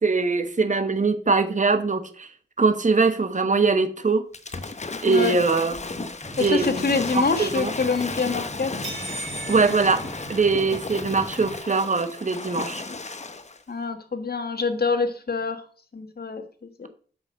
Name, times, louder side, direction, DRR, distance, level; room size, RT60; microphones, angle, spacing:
voice 1, 0.0-2.3 2.6-4.2 5.0-6.1 6.4-6.9 7.1-7.7 9.5-12.8, right 4 dB, 40° right, 9 dB, 1.1 m, -22 dB
Waves surf / Splash splatter, 4.3-13.6, left 3 dB, 40° left, 0.9 m, -34 dB
sound 1, 6.2-11.6, equal, 5° left, 1.0 m, -40 dB
voice 2, 6.4-8.7 13.7-15.6 15.9-16.4 16.8-16.9, left 4 dB, 55° left, 8 dB, 1.5 m, -25 dB
sound 2, 8.8-11.0, right 3 dB, 80° right, 3.9 m, -37 dB
8.2 x 6.2 x 6.5 m, 0.44 s
wide cardioid pair, 80°, 19 cm